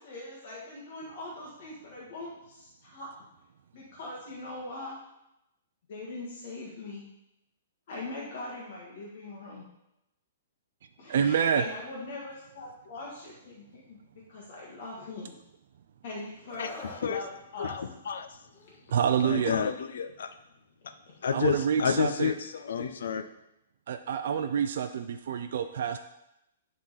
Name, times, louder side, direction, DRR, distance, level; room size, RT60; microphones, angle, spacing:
voice 1, 0.0-3.1 3.7-5.0 5.9-7.0 7.9-9.7 11.0-14.0 14.3-15.4 16.0-16.7 17.0-17.8 21.1-21.2, left 2 dB, 45° left, -4 dB, 1.5 m, -41 dB
voice 2, 11.1-11.6 18.9-19.6 21.3-22.3 23.9-26.0, right 7 dB, 55° right, 7 dB, 0.4 m, -27 dB
Screaming, 16.5-17.1 18.5-18.8, left 3 dB, 20° left, 1.4 m, -42 dB
voice 3, 16.6-17.3 17.6-18.4 19.2-20.3 21.2-23.2, left 7 dB, 75° left, 8 dB, 0.7 m, -30 dB
10.0 x 3.7 x 4.1 m, 0.86 s
hypercardioid pair, 170°, 0 cm